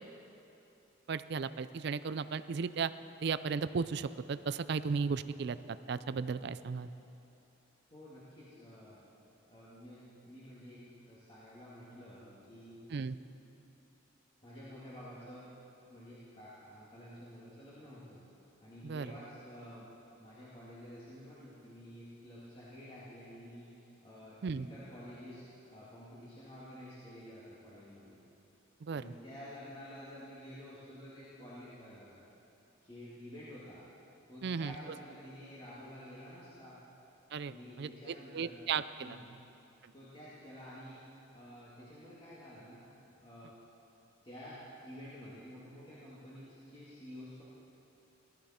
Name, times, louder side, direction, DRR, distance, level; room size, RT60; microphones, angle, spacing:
voice 1, 1.1-2.9 3.2-6.9 12.9-13.2 18.8-19.1 24.4-24.7 28.8-29.0 34.4-34.7 37.3-39.2 39.8-39.9, right 5 dB, 55° right, 14 dB, 0.4 m, -35 dB
voice 2, 7.9-9.0 9.5-12.8 14.4-15.5 15.9-18.2 18.6-19.9 20.2-28.2 28.9-32.2 32.8-33.8 34.3-36.8 37.4-38.6 39.0-39.4 39.9-41.0 41.3-43.5 44.2-47.4, equal, 25° left, -10 dB, 2.1 m, -50 dB
18.0 x 13.0 x 4.3 m, 2.9 s
head